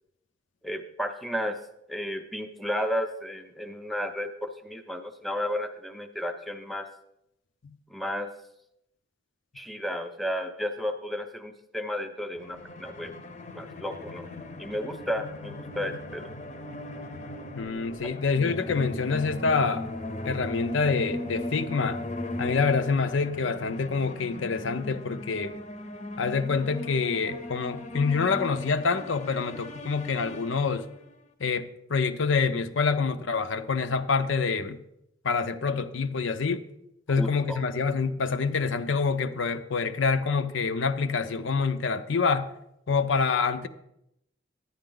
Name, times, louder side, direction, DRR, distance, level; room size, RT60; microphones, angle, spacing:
voice 1, 0.6-1.6 1.9-6.9 7.9-8.3 9.6-13.1 13.5-14.3 14.6-16.3 37.2-37.6, equal, ahead, 6 dB, 0.5 m, -33 dB
sound 1, 12.4-31.1, left 1 dB, 35° left, 0.7 m, -38 dB
voice 2, 17.6-19.9 20.2-22.0 22.4-25.6 26.2-30.9 31.4-34.8 35.2-36.6 37.1-42.5 42.9-43.7, left 5 dB, 80° left, 10 dB, 0.6 m, -26 dB
10.5 x 10.0 x 3.8 m, 0.81 s
head